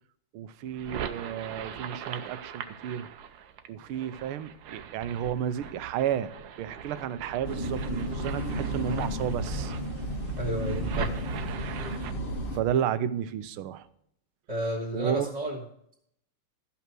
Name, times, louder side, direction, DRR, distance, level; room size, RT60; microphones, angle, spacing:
voice 1, 0.3-3.1 3.7-6.3 6.6-9.7 12.5-13.8 14.9-15.3, right 9 dB, 85° right, 13 dB, 1.6 m, -32 dB
sound 1, 0.7-12.1, right 7 dB, 70° right, 1.5 m, -40 dB
sound 2, 7.4-12.6, right 1 dB, 30° left, 1.4 m, -32 dB
voice 2, 10.4-11.1 14.5-15.6, equal, 20° right, -1 dB, 2.1 m, -31 dB
13.0 x 5.8 x 6.1 m, 0.70 s
omnidirectional pair, 2.3 m